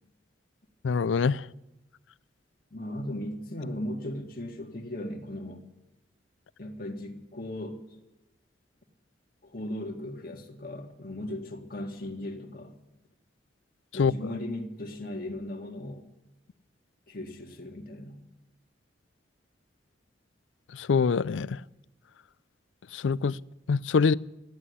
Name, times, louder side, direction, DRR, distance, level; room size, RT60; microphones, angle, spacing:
voice 1, 0.8-1.4 14.0-14.1 20.8-21.6 22.9-23.3 23.7-24.1, left 5 dB, 85° left, 0.4 m, -24 dB
voice 2, 2.7-5.7 6.6-7.8 9.4-12.7 13.9-16.1 17.1-18.2, left 1 dB, 50° left, 1.8 m, -37 dB
14.0 x 10.0 x 9.6 m
head